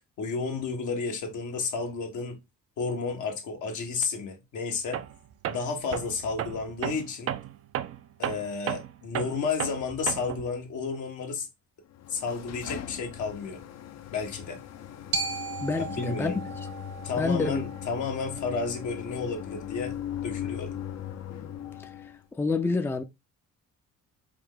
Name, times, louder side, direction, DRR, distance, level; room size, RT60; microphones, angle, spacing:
voice 1, 0.2-2.4 2.8-5.0 5.5-7.3 8.2-11.5 12.1-13.6 14.1-14.6 15.8-16.4 17.0-19.9 20.2-20.7, left 4 dB, 75° left, 1.3 m, -32 dB
Tools, 4.9-5.2 5.4-10.5, right 11 dB, 50° right, 0.4 m, -34 dB
sound 1, 11.9-22.2, left 10 dB, 60° left, 0.6 m, -39 dB
Glockenspiel, 15.1-19.2, right 5 dB, 65° right, 1.0 m, -37 dB
voice 2, 15.6-16.4 17.2-17.6 22.4-23.0, left 3 dB, 10° left, 0.4 m, -27 dB
4.8 x 2.2 x 3.7 m
cardioid pair, 90°, 30 cm